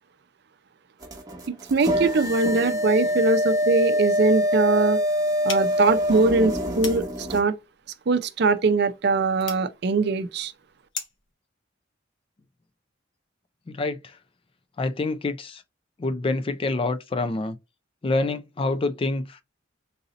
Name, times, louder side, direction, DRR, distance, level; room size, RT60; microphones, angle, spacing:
sound 1, 1.0-7.4, equal, 20° right, 1.0 m, -25 dB
voice 1, 1.7-5.0 5.4-7.6 8.1-10.5, right 3 dB, 55° right, 0.5 m, -22 dB
sound 2, 5.4-11.3, left 5 dB, 70° left, 1.1 m, -40 dB
voice 2, 13.7-14.2 14.8-15.6 16.0-17.6 18.0-19.4, left 2 dB, 30° left, 0.3 m, -27 dB
4.0 x 2.7 x 3.8 m
head